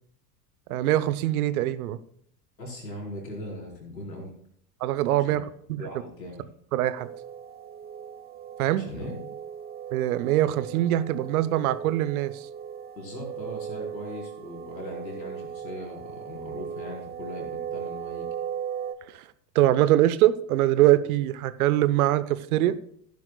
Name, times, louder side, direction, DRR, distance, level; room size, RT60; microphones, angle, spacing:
voice 1, 0.7-2.0 4.8-5.4 5.7-5.8 6.7-7.1 8.6-8.8 9.9-12.5 19.1-19.2 19.5-22.8, right 14 dB, 60° right, 15 dB, 0.9 m, -23 dB
voice 2, 2.6-4.3 5.3-5.4 5.8-6.4 8.7-9.2 13.0-18.3, left 1 dB, 85° left, -2 dB, 4.6 m, -39 dB
sound 1, 6.9-18.9, right 8 dB, 20° right, 0.7 m, -38 dB
16.0 x 10.5 x 2.3 m, 0.68 s
figure-of-eight pair, 80°, 49 cm